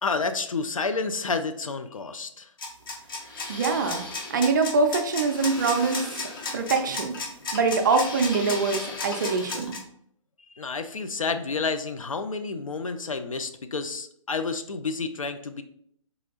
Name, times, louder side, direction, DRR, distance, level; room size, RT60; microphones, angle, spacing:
voice 1, 0.0-2.5 10.5-15.6, left 4 dB, 75° left, 8 dB, 0.4 m, -30 dB
sound 1, 2.6-9.8, left 3 dB, 40° left, 0.7 m, -34 dB
voice 2, 3.5-4.0 4.3-6.2 6.5-7.2 7.5-9.8, right 4 dB, 35° right, 6 dB, 0.4 m, -24 dB
4.0 x 2.4 x 2.8 m, 0.67 s
figure-of-eight pair, 130°, 17 cm